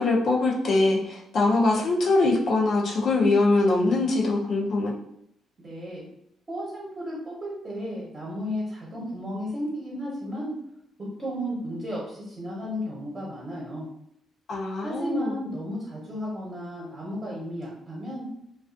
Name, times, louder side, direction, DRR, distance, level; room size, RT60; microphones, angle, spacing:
voice 1, 0.0-4.9 14.5-15.3, left 2 dB, 60° left, -3 dB, 0.5 m, -23 dB
voice 2, 5.6-6.0 6.5-10.5 11.2-13.9 14.8-18.2, equal, 30° right, -5 dB, 0.9 m, -33 dB
2.4 x 2.3 x 2.4 m, 0.76 s
cardioid pair, 90°, 0 cm